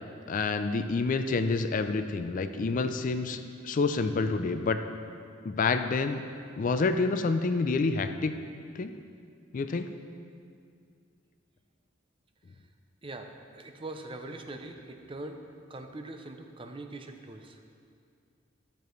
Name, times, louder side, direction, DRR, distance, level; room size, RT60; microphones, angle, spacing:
voice 1, 0.3-4.8 5.4-6.2 6.6-8.3 8.8-8.9 9.5-9.9, left 4 dB, 40° left, 9 dB, 0.4 m, -28 dB
voice 2, 13.0-15.4 15.7-17.6, right 2 dB, 25° right, 5 dB, 0.5 m, -42 dB
12.5 x 6.8 x 3.1 m, 2.3 s
head